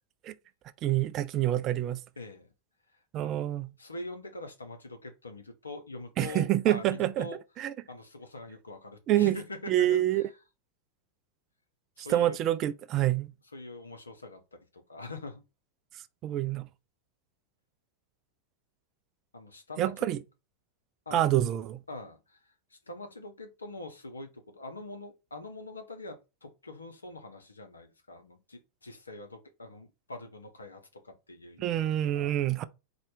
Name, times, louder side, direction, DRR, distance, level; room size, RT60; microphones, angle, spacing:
voice 1, 0.8-2.0 3.1-3.7 6.2-7.3 7.6-7.7 9.1-9.4 9.7-10.2 12.0-13.3 16.2-16.7 19.8-20.2 21.1-21.8 31.6-32.6, right 13 dB, 35° right, 0.4 m, -27 dB
voice 2, 2.2-2.5 3.2-3.4 3.8-7.4 7.9-10.3 12.0-12.4 13.5-15.4 19.3-20.1 21.1-21.3 21.9-22.4 22.7-32.4, left 2 dB, 75° left, 0.8 m, -44 dB
4.2 x 2.4 x 4.6 m
figure-of-eight pair, 90°, 0 cm